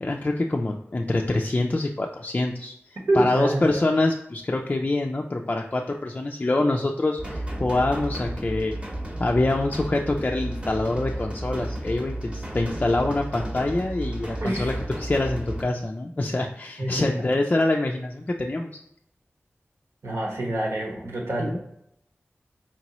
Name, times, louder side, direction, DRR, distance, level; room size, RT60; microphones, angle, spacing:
voice 1, 0.0-2.7 3.1-8.7 9.2-14.7 15.0-18.8 21.4-21.6, left 2 dB, 35° left, 1 dB, 0.3 m, -25 dB
voice 2, 3.1-3.8 14.4-14.7 16.8-17.1 20.0-21.6, right 1 dB, 70° right, -1 dB, 1.2 m, -26 dB
sound 1, 7.2-15.6, right 1 dB, 25° right, 0.9 m, -33 dB
4.4 x 3.0 x 2.9 m, 0.75 s
wide cardioid pair, 80°, 5 cm